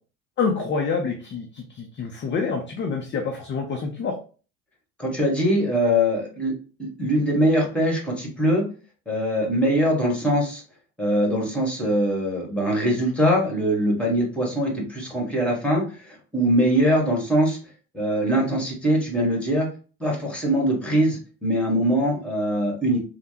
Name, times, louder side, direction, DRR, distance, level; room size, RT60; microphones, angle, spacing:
voice 1, 0.4-4.2, left 5 dB, 25° left, 2 dB, 0.5 m, -27 dB
voice 2, 5.0-6.5 6.8-8.6 9.1-10.6 11.0-17.6 17.9-19.7 20.0-23.0, equal, ahead, -1 dB, 1.4 m, -22 dB
3.2 x 2.1 x 2.8 m, 0.37 s
hypercardioid pair, 70°, 47 cm